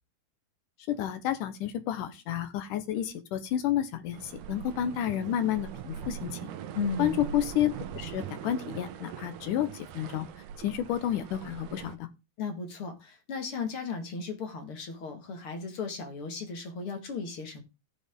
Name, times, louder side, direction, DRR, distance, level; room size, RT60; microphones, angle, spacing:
voice 1, 0.9-6.5 7.0-10.3 10.6-12.1, left 11 dB, 70° left, 11 dB, 2.2 m, -30 dB
sound 1, 4.1-12.0, right 9 dB, 70° right, 2.1 m, -41 dB
voice 2, 6.7-7.2 12.4-17.6, left 5 dB, 45° left, 5 dB, 2.2 m, -35 dB
15.0 x 7.1 x 3.6 m, 0.26 s
omnidirectional pair, 4.3 m